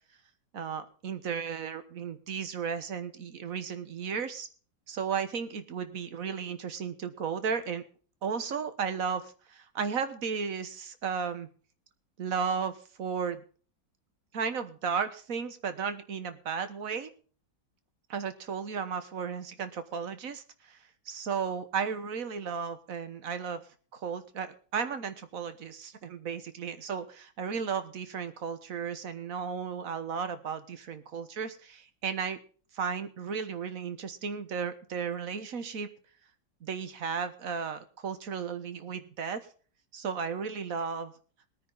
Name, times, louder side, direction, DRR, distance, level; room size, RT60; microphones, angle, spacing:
voice 1, 0.5-4.5 4.9-7.8 8.2-11.5 12.2-13.4 14.3-17.1 18.1-20.8 21.0-23.6 23.9-32.4 32.7-35.9 36.6-39.4 39.9-41.1, right 6 dB, 50° right, 11 dB, 1.5 m, -34 dB
21.0 x 9.5 x 4.0 m, 0.41 s
omnidirectional pair, 2.0 m